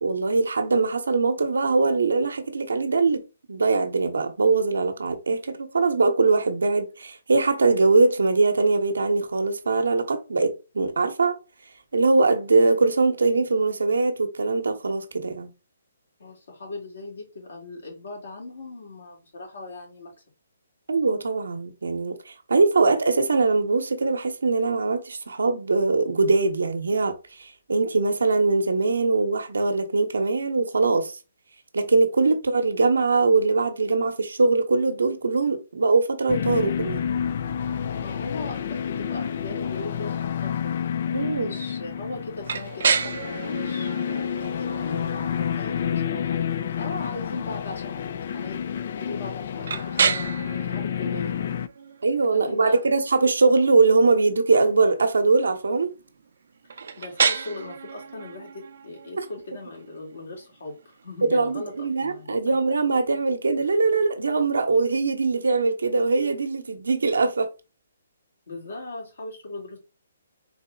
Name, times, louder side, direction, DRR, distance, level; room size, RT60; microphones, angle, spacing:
voice 1, 0.0-3.2 3.5-11.4 11.9-15.5 20.9-31.1 31.7-37.1 41.1-41.5 52.0-55.9 61.3-67.5, right 3 dB, 80° right, 0.9 m, -22 dB
voice 2, 16.2-20.1 38.0-40.7 41.4-48.6 48.9-50.3 50.7-51.5 52.3-52.8 56.6-62.6 68.5-69.8, left 2 dB, 70° left, 2.6 m, -39 dB
sound 1, 36.3-51.7, left 8 dB, 55° left, 0.3 m, -29 dB
sound 2, 42.4-62.2, right 6 dB, 65° right, 0.6 m, -32 dB
4.1 x 2.9 x 3.4 m
hypercardioid pair, 140°, 0 cm